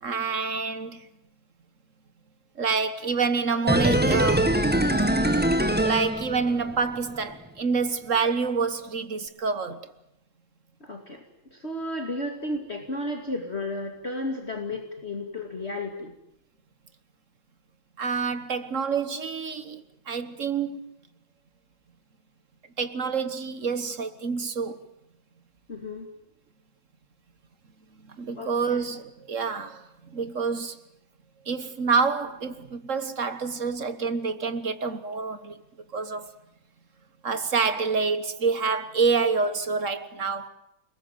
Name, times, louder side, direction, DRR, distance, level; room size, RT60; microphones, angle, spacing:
voice 1, 0.0-1.1 2.6-4.5 5.8-9.9 18.0-20.8 22.8-24.8 28.1-29.8 30.1-30.8 31.4-35.6 35.9-36.3 37.2-40.5, right 5 dB, 45° right, 1.6 m, -27 dB
sound 1, 3.7-6.8 7.1-7.2, right 1 dB, 5° right, 1.6 m, -23 dB
voice 2, 10.8-11.2 11.5-16.2 25.7-26.1 28.4-28.8, left 1 dB, 35° left, 2.8 m, -33 dB
29.0 x 20.5 x 9.2 m
omnidirectional pair, 2.0 m